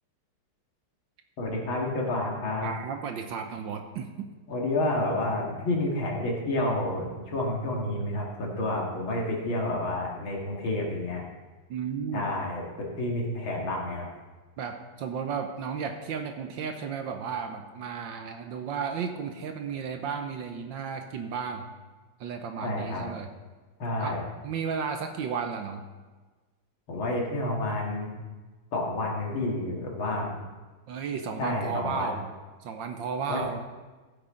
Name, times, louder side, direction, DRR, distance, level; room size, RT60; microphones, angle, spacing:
voice 1, 1.4-2.7 4.5-11.2 12.1-14.1 22.6-23.1 23.8-24.2 26.9-28.1 28.7-30.4 31.4-32.1 33.3-33.4, left 2 dB, 65° left, -1 dB, 2.7 m, -29 dB
voice 2, 2.6-4.1 11.7-12.3 14.6-21.7 22.2-23.3 24.0-24.2 24.4-25.8 30.9-32.3 32.6-33.6, right 6 dB, 70° right, 6 dB, 1.4 m, -33 dB
15.0 x 8.5 x 3.8 m, 1.3 s
omnidirectional pair, 2.4 m